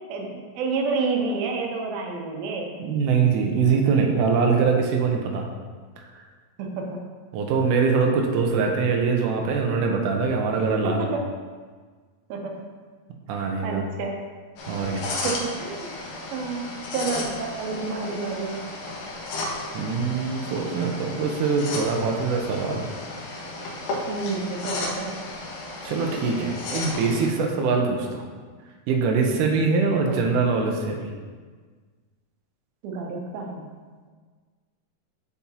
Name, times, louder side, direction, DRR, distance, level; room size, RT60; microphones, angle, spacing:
voice 1, 0.6-2.7 6.6-7.0 10.8-11.2 12.3-12.6 13.4-14.2 15.2-15.9 16.3-18.6 24.1-25.1 30.1-30.2 32.8-33.6, right 4 dB, 90° right, 1 dB, 2.8 m, -29 dB
voice 2, 2.8-5.5 7.3-11.1 13.3-13.8 14.7-15.1 19.7-22.9 25.8-28.2 28.9-31.1, right 5 dB, 75° right, 1 dB, 2.2 m, -23 dB
sound 1, 14.6-27.3, left 2 dB, 75° left, 2.9 m, -34 dB
8.5 x 7.0 x 2.9 m, 1.5 s
omnidirectional pair, 4.2 m